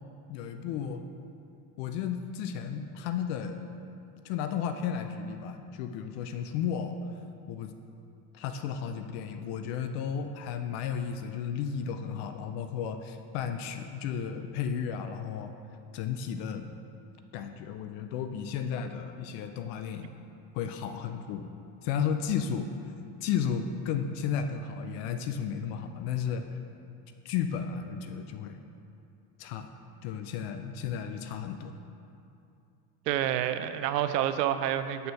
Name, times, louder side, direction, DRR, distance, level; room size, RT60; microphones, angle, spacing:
voice 1, 0.3-1.0 1.8-3.7 4.2-7.0 7.5-7.7 8.3-15.6 15.9-16.7 17.3-20.1 20.5-21.5 21.8-22.7 23.2-26.5 27.2-28.6 29.4-29.7 30.0-31.7, left 7 dB, 55° left, 7 dB, 0.6 m, -33 dB
voice 2, 33.1-35.1, right 11 dB, 90° right, 11 dB, 0.6 m, -28 dB
6.7 x 4.3 x 6.4 m, 2.6 s
supercardioid pair, 105°, 47 cm